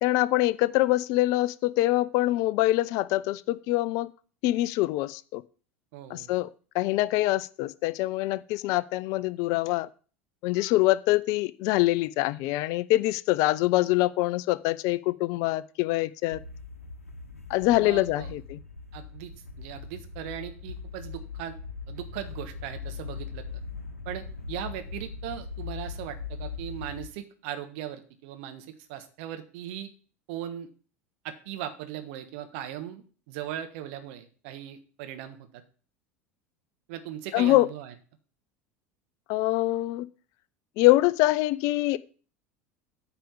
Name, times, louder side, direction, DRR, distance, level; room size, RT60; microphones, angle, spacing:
voice 1, 0.0-4.1 4.4-5.4 6.1-6.5 6.7-9.9 10.4-16.4 17.5-18.6 37.3-37.7 39.3-40.1 40.8-42.0, left 17 dB, 50° left, 19 dB, 0.4 m, -24 dB
voice 2, 5.9-6.3 17.8-18.4 18.9-19.3 19.6-21.6 21.9-23.6 24.0-29.9 30.3-30.7 31.2-35.6 36.9-37.9, right 11 dB, 55° right, 8 dB, 1.3 m, -38 dB
sound 1, 16.3-27.1, left 5 dB, 85° left, 0.9 m, -40 dB
9.1 x 5.0 x 7.0 m, 0.40 s
figure-of-eight pair, 75°, 8 cm